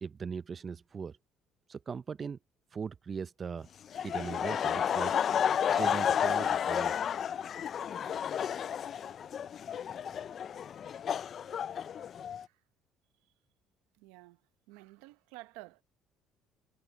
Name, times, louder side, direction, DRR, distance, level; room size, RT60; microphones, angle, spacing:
voice 1, 0.0-1.2 1.7-2.4 2.7-3.7 4.0-5.1 5.7-7.1, right 6 dB, 35° right, 0.4 m, -39 dB
Laughter, 3.9-12.4, left 8 dB, 45° left, 0.3 m, -31 dB
voice 2, 13.9-14.4 14.7-15.8, right 20 dB, 90° right, 0.9 m, -51 dB
supercardioid pair, 95°, 0 cm